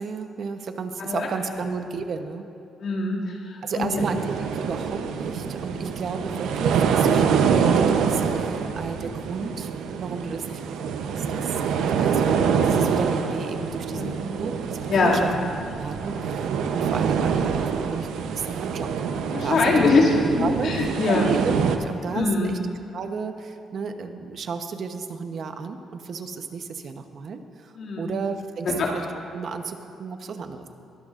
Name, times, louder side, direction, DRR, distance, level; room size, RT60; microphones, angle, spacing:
voice 1, 0.0-2.5 3.6-11.5 12.0-15.3 15.8-20.1 20.4-22.6 22.9-29.0 29.3-30.7, right 5 dB, 55° right, 7 dB, 0.9 m, -33 dB
voice 2, 2.8-4.0 13.9-14.3 14.9-15.3 19.3-21.3 22.1-22.6 27.8-28.1 28.6-28.9, left 3 dB, 65° left, -3 dB, 2.4 m, -23 dB
sound 1, 4.0-21.8, right 6 dB, 85° right, 0.7 m, -25 dB
21.5 x 13.0 x 2.5 m, 2.6 s
cardioid pair, 90°, 0 cm